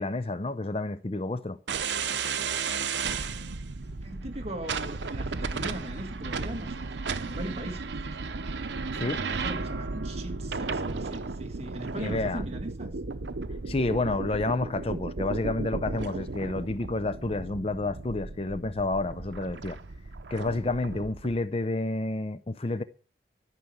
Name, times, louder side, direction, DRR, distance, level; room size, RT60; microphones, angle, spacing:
voice 1, 0.0-1.6 9.0-9.2 12.0-12.4 13.7-19.8 20.3-22.8, left 2 dB, 35° left, 0.6 m, -30 dB
sound 1, 1.7-21.4, right 4 dB, 85° right, 0.8 m, -34 dB
voice 2, 4.0-8.5 8.9-13.0, right 1 dB, 35° right, 2.2 m, -39 dB
14.0 x 6.1 x 9.6 m
head